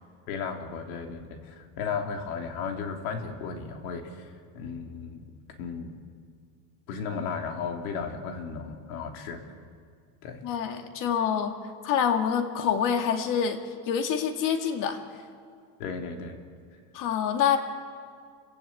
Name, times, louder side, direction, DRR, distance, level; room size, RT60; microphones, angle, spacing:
voice 1, 0.3-5.3 5.6-6.0 6.9-9.5 10.2-10.4 15.8-16.4, left 5 dB, 90° left, 3 dB, 3.3 m, -35 dB
voice 2, 10.4-11.6 11.8-13.6 13.9-15.0 16.9-17.6, left 8 dB, 45° left, 5 dB, 2.3 m, -26 dB
29.0 x 15.5 x 8.8 m, 2.2 s
cardioid pair, 160°, 42 cm